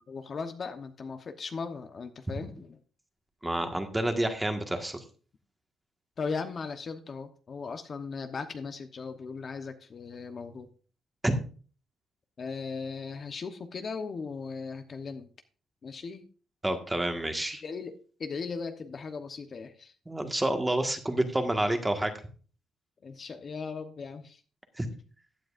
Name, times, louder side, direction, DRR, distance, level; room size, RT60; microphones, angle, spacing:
voice 1, 0.1-2.8 3.6-3.7 6.2-10.7 12.4-15.3 15.8-16.3 17.6-19.9 23.0-24.4, left 5 dB, 45° left, 7 dB, 1.0 m, -38 dB
voice 2, 3.4-5.0 11.2-11.3 16.6-17.6 20.1-22.1 24.8-24.9, right 1 dB, 10° right, 6 dB, 1.6 m, -29 dB
15.5 x 9.2 x 2.5 m, 0.39 s
cardioid pair, 90°, 0 cm